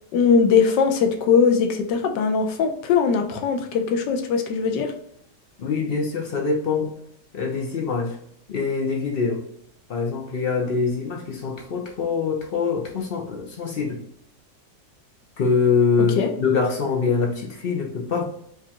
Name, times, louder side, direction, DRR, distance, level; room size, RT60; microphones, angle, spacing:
voice 1, 0.1-4.9 16.2-16.3, left 6 dB, 90° left, 5 dB, 1.3 m, -20 dB
voice 2, 5.6-6.9 7.3-8.2 8.5-9.4 9.9-14.0 15.4-18.2, left 5 dB, 65° left, 0 dB, 0.5 m, -24 dB
4.9 x 2.4 x 2.8 m, 0.69 s
omnidirectional pair, 1.9 m